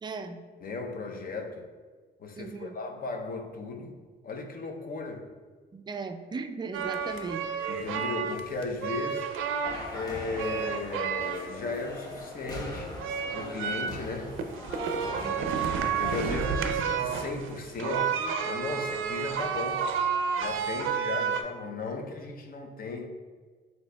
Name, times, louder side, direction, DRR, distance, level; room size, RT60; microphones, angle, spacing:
voice 1, 0.0-0.4 2.4-2.7 5.7-7.5 15.2-15.6 16.2-16.4, right 4 dB, 20° right, 7 dB, 0.3 m, -37 dB
voice 2, 0.6-1.7 2.2-5.3 7.7-9.3 9.9-12.9 13.3-14.4 15.8-19.9 20.4-23.1, left 3 dB, 45° left, 4 dB, 0.6 m, -36 dB
sound 1, 6.7-10.0 10.4-11.7 12.1-21.4, right 6 dB, 90° right, 0.4 m, -31 dB
sound 2, 9.6-16.3, left 1 dB, 20° left, 0.9 m, -40 dB
7.5 x 2.8 x 2.2 m, 1.4 s
cardioid pair, 90°, 20 cm